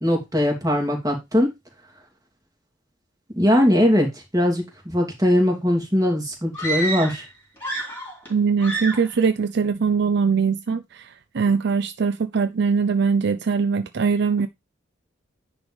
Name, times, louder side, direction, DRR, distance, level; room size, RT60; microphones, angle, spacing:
voice 1, 0.0-1.5 3.4-4.1 4.3-7.2, equal, 15° right, 2.6 m, -20 dB
sound 1, 6.5-7.3 7.6-8.3 8.6-9.1, right 2 dB, 10° left, 3.5 m, -29 dB
voice 2, 8.3-11.1 11.3-14.5, right 5 dB, 60° right, 0.5 m, -21 dB
10.0 x 3.4 x 5.1 m
head